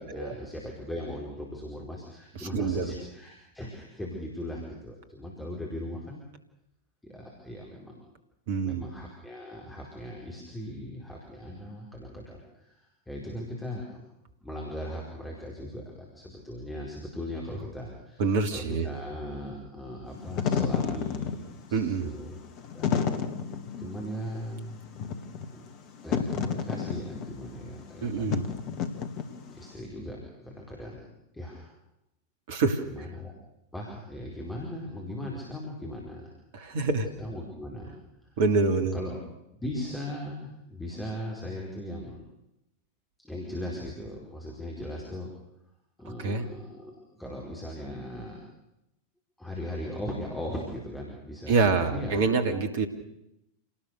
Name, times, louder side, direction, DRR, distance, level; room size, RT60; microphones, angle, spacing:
voice 1, 0.0-6.2 7.0-8.0 8.6-14.0 14.4-18.2 18.5-22.4 22.7-22.9 23.8-24.8 26.0-28.4 29.5-31.0 31.3-31.7 32.9-33.3 33.7-36.3 36.6-36.8 37.2-37.9 38.2-38.4 38.9-39.2 39.6-42.3 43.2-45.3 46.0-48.5 49.4-52.2, left 1 dB, 5° left, -2 dB, 5.0 m, -38 dB
voice 2, 2.3-2.9 8.5-8.9 18.2-18.9 21.7-22.1 28.0-28.5 32.5-32.8 36.5-37.1 38.4-39.0 46.2-46.5 51.5-52.9, right 4 dB, 55° right, 8 dB, 2.7 m, -26 dB
Wind / Fire, 20.1-29.7, left 6 dB, 40° left, 2.1 m, -31 dB
28.0 x 19.0 x 6.7 m, 0.86 s
figure-of-eight pair, 90°, 0 cm